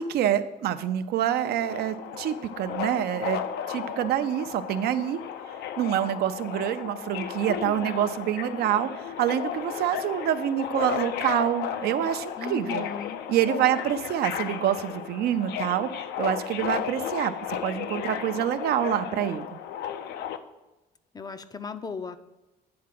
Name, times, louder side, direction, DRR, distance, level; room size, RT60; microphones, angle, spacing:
voice 1, 0.0-3.4 3.7-5.2 5.8-12.9 13.3-15.9 16.2-17.3 17.6-19.6, right 11 dB, 70° right, 10 dB, 0.5 m, -26 dB
Subway metro underground, 1.6-20.4, left 9 dB, 75° left, 0.5 m, -34 dB
voice 2, 12.4-13.2 21.1-22.2, left 5 dB, 25° left, 11 dB, 0.4 m, -36 dB
8.6 x 3.7 x 5.9 m, 1.1 s
cardioid pair, 110°, 17 cm